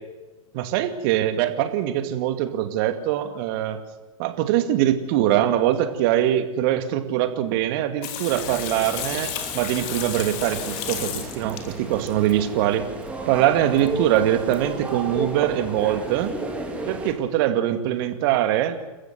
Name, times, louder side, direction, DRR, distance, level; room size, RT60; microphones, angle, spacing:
voice 1, 0.5-3.8 4.2-12.9 13.3-16.4 16.9-18.8, right 12 dB, 40° right, 9 dB, 2.3 m, -23 dB
Water tap faucet / Sink (filling or washing), 8.0-12.3 13.8-13.9 14.2-14.3 14.5-14.6, left 9 dB, 35° left, 3.1 m, -33 dB
sound 1, 8.3-17.1, right 2 dB, 5° right, 3.4 m, -34 dB
29.0 x 14.5 x 7.9 m, 1.2 s
figure-of-eight pair, 115°, 18 cm